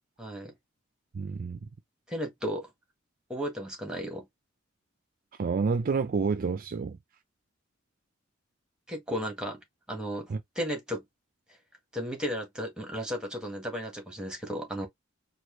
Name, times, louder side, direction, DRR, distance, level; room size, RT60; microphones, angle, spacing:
voice 1, 0.2-0.5 2.1-2.7 3.3-4.3 8.9-9.6 9.9-11.0 11.9-14.9, equal, 5° right, 1.5 m, -34 dB
voice 2, 1.1-1.7 5.4-7.0 10.3-10.4, right 5 dB, 45° right, 0.4 m, -29 dB
4.6 x 2.3 x 3.1 m
head